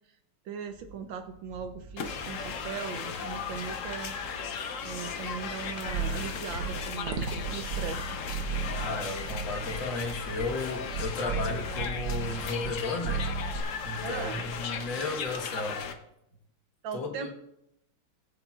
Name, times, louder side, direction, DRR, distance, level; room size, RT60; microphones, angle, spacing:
voice 1, 0.5-4.1 4.8-8.2 8.5-8.6 14.0-14.4 16.8-17.3, right 7 dB, 75° right, 8 dB, 1.2 m, -39 dB
sound 1, 0.7-14.9, right 2 dB, 15° left, 0.6 m, -49 dB
sound 2, 2.0-15.9, left 6 dB, 85° left, 0.6 m, -37 dB
sound 3, 5.9-12.7 13.0-13.6, right 5 dB, 90° right, 2.0 m, -35 dB
voice 2, 8.7-13.2 13.8-15.9 16.9-17.3, left 3 dB, 60° left, 2 dB, 1.8 m, -34 dB
19.0 x 7.1 x 2.3 m, 0.81 s
omnidirectional pair, 2.4 m